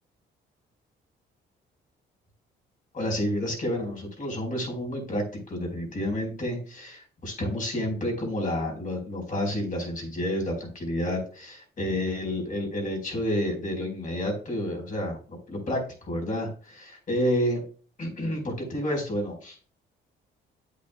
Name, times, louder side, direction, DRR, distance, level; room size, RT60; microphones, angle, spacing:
voice 1, 2.9-17.6 18.0-19.8, left 1 dB, 40° left, 1 dB, 4.6 m, -30 dB
8.7 x 8.4 x 2.3 m, 0.39 s
cardioid pair, 90°, 20 cm